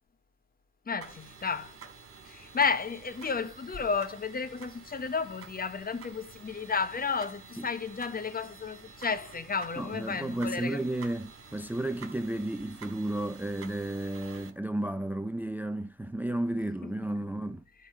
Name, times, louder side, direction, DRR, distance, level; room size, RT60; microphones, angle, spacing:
voice 1, 0.9-1.7 2.3-10.8 16.8-16.9, left 5 dB, 30° left, 1.0 m, -32 dB
sound 1, 1.0-14.5, right 5 dB, 45° right, 3.4 m, -50 dB
voice 2, 9.8-17.6, right 1 dB, 5° right, 0.5 m, -33 dB
11.5 x 5.5 x 5.4 m
cardioid pair, 90°, 30 cm